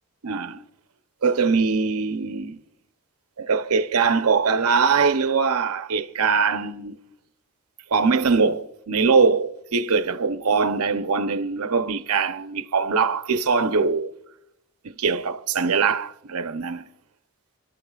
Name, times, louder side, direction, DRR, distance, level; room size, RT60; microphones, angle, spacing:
voice 1, 0.2-0.6 1.2-2.6 3.4-7.0 7.9-14.1 14.8-16.8, right 5 dB, 85° right, 0.7 m, -22 dB
30.0 x 12.0 x 2.4 m
head